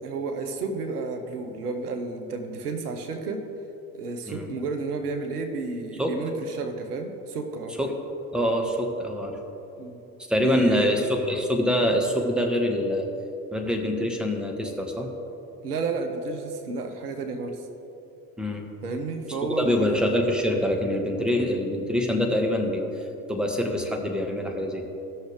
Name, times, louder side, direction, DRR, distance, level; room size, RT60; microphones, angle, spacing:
voice 1, 0.0-3.4 3.9-7.8 9.8-10.0 10.4-11.0 15.6-17.7 18.8-20.1, right 3 dB, 90° right, 5 dB, 0.8 m, -31 dB
voice 2, 8.3-9.4 10.3-13.1 13.5-15.1 18.4-18.6 19.6-24.8, left 1 dB, ahead, 2 dB, 1.3 m, -25 dB
15.5 x 6.4 x 3.4 m, 2.9 s
hypercardioid pair, 55°, 44 cm